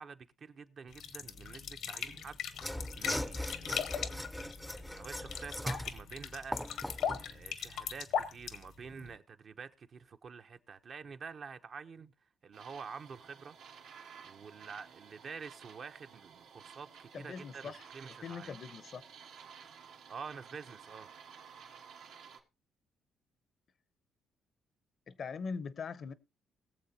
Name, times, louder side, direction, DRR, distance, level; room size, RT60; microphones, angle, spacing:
voice 1, 0.0-12.1 12.4-13.5 13.9-18.5 20.1-21.1, right 5 dB, 50° right, 0.8 m, -48 dB
sound 1, 0.9-9.1, left 8 dB, 80° left, 1.3 m, -39 dB
Mechanisms / Sawing, 2.6-7.3, left 1 dB, 5° left, 0.6 m, -39 dB
sound 2, 12.5-22.4, right 6 dB, 90° right, 2.0 m, -54 dB
voice 2, 17.1-17.8 18.2-19.0 25.1-26.1, left 5 dB, 55° left, 0.8 m, -41 dB
22.0 x 7.3 x 2.8 m
cardioid pair, 90°, 0 cm